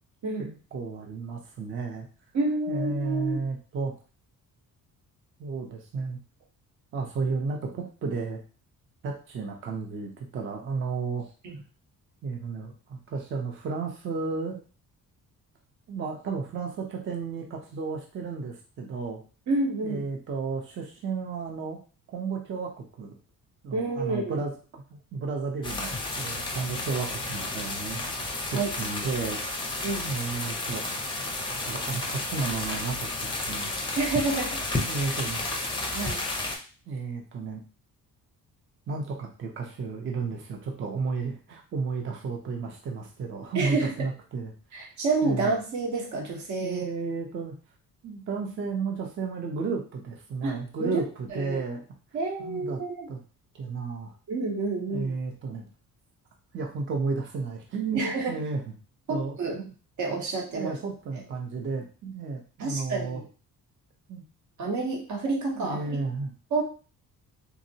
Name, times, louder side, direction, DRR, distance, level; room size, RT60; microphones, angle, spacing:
voice 1, 0.7-2.1 2.7-3.9 5.4-6.2 6.9-8.4 9.0-11.3 12.2-14.6 15.9-19.2 19.8-21.8 22.1-23.2 23.6-29.4 30.1-30.8 31.6-33.8 34.8-35.4 36.9-37.6 38.9-44.5 44.8-44.9 45.2-45.5 46.6-47.6 48.0-51.8 52.4-52.8 53.1-53.2 53.5-54.1 54.9-55.7 56.5-58.6 59.1-59.7 60.5-63.2 64.1-64.2 65.5-66.3, right 4 dB, 35° right, 1 dB, 0.5 m, -33 dB
voice 2, 2.3-3.4 11.4-11.6 19.5-20.1 23.7-24.4 28.5-28.7 29.8-30.1 34.0-34.6 35.9-36.2 43.5-43.9 44.7-46.8 50.4-51.0 51.3-51.6 52.1-53.1 54.3-55.1 57.9-58.4 59.1-59.6 60.0-60.7 62.6-63.2 64.6-66.0 66.5-66.6, right 3 dB, 55° right, 1 dB, 0.9 m, -29 dB
sound 1, 25.6-36.6, left 2 dB, 15° left, 0.5 m, -32 dB
3.6 x 2.0 x 2.6 m, 0.36 s
cardioid pair, 145°, 34 cm